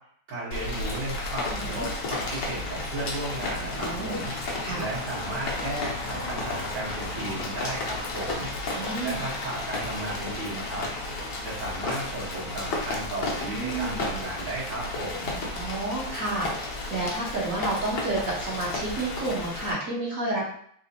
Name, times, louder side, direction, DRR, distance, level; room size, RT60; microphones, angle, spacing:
voice 1, 0.3-15.4, right 1 dB, 70° right, -8 dB, 2.0 m, -35 dB
Rain, 0.5-19.7, left 2 dB, 65° left, 1.3 m, -33 dB
voice 2, 1.5-1.9 3.7-4.2 4.6-4.9 8.7-9.2 13.5-14.1 15.5-20.5, right 2 dB, 50° right, -4 dB, 1.2 m, -30 dB
4.2 x 3.4 x 2.7 m, 0.64 s
omnidirectional pair, 2.2 m